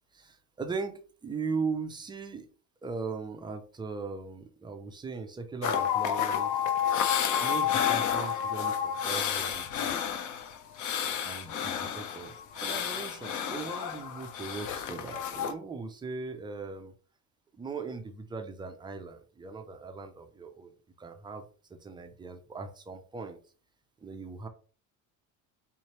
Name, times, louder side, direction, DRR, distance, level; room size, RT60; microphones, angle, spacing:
voice 1, 0.1-2.5 2.8-6.6 7.4-10.0 11.2-16.9 17.6-23.4 24.0-24.5, right 4 dB, 10° right, 0.3 m, -39 dB
sound 1, 5.6-15.5, left 8 dB, 45° left, 0.6 m, -30 dB
3.7 x 3.1 x 2.9 m
cardioid pair, 125°, 42 cm